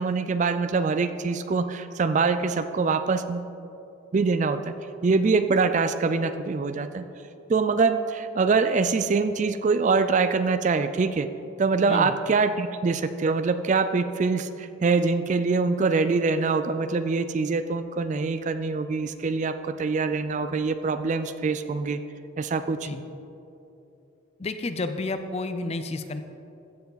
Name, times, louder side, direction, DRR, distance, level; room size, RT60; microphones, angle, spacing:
voice 1, 0.0-3.5 4.1-4.7 5.0-7.0 7.5-11.3 11.6-22.0 22.4-22.9, right 4 dB, 35° right, 11 dB, 0.3 m, -24 dB
voice 2, 24.4-26.2, left 2 dB, 30° left, 9 dB, 0.5 m, -30 dB
15.0 x 7.0 x 4.0 m, 2.9 s
head